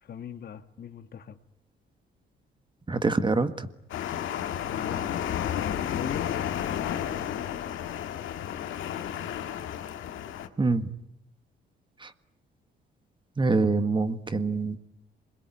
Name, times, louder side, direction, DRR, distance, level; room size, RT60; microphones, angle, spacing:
voice 1, 0.0-1.4 4.6-5.3 5.7-7.0, left 7 dB, 55° left, 10 dB, 1.6 m, -40 dB
voice 2, 2.9-3.7 10.6-10.9 12.0-12.1 13.4-14.8, right 3 dB, 25° right, 11 dB, 1.7 m, -25 dB
sound 1, 3.9-10.5, left 10 dB, 80° left, 2.0 m, -32 dB
27.5 x 21.5 x 9.9 m, 0.83 s
cardioid pair, 90°, 20 cm